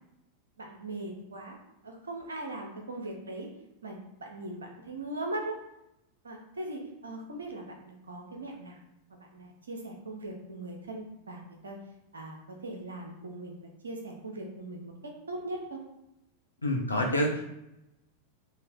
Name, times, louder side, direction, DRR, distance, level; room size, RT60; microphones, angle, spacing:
voice 1, 0.6-1.6 1.8-3.5 3.8-5.6 6.2-8.8 9.1-11.8 12.1-14.9 15.3-15.8, right 2 dB, 70° right, 2 dB, 0.8 m, -40 dB
voice 2, 16.6-17.4, left 1 dB, 80° left, 0 dB, 0.8 m, -27 dB
3.2 x 2.9 x 4.1 m, 0.88 s
figure-of-eight pair, 90°, 0 cm